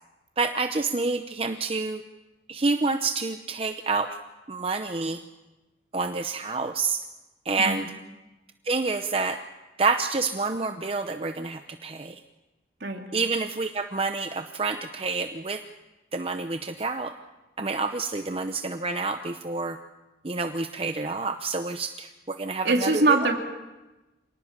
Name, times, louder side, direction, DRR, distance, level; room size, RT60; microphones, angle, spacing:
voice 1, 0.4-2.0 2.5-4.2 4.5-5.2 5.9-7.0 7.4-7.9 8.6-9.4 9.8-12.2 13.1-15.6 16.1-17.1 17.6-19.8 20.2-23.2, right 3 dB, 35° right, 7 dB, 0.7 m, -28 dB
voice 2, 22.6-23.4, right 3 dB, 75° right, 1 dB, 2.7 m, -22 dB
26.5 x 19.0 x 7.3 m, 1.1 s
head